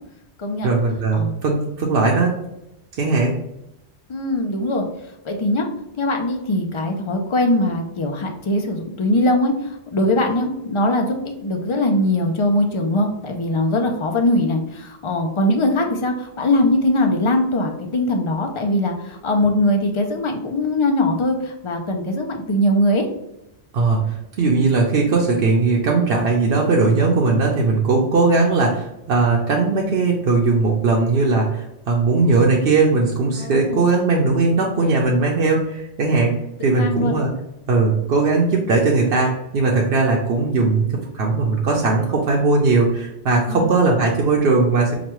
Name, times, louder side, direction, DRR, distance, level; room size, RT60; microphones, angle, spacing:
voice 1, 0.6-2.4 3.0-3.3 23.7-36.3 36.6-37.3 37.7-44.9, right 3 dB, 65° right, -1 dB, 0.8 m, -19 dB
voice 2, 4.1-4.9 5.2-5.7 6.0-23.1 33.4-33.9 36.8-37.2 43.5-43.7, left 1 dB, 55° left, 4 dB, 0.3 m, -21 dB
4.9 x 2.2 x 3.0 m, 0.87 s
omnidirectional pair, 1.1 m